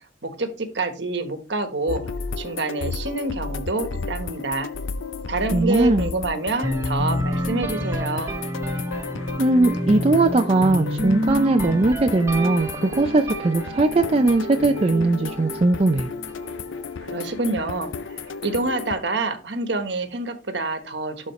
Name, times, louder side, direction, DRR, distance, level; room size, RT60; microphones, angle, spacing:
voice 1, 0.2-2.0 2.4-4.7 5.3-8.3 17.0-21.3, right 2 dB, 65° right, 8 dB, 1.3 m, -27 dB
sound 1, 1.9-19.0, left 4 dB, 80° left, 0.5 m, -34 dB
voice 2, 5.5-6.1 9.4-16.1, right 2 dB, 30° right, 5 dB, 0.4 m, -19 dB
sound 2, 6.6-16.4, equal, 15° right, 0.8 m, -29 dB
12.0 x 4.4 x 3.1 m, 0.34 s
head